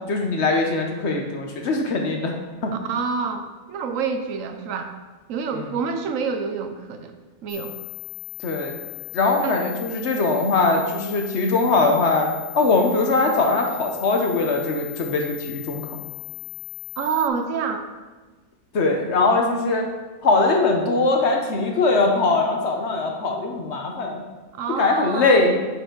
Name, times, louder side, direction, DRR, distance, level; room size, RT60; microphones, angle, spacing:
voice 1, 0.1-2.3 2.6-2.7 8.4-8.7 9.1-15.8 18.7-19.9 20.2-24.2 24.8-25.6, left 3 dB, 55° left, 2 dB, 1.0 m, -21 dB
voice 2, 2.8-4.9 5.3-7.1 7.4-7.7 9.4-9.6 17.0-17.9 24.5-25.4, right 5 dB, 70° right, 7 dB, 0.9 m, -27 dB
sound 1, 7.5-17.3, left 21 dB, 25° left, 0.5 m, -37 dB
7.9 x 4.7 x 3.7 m, 1.3 s
omnidirectional pair, 1.5 m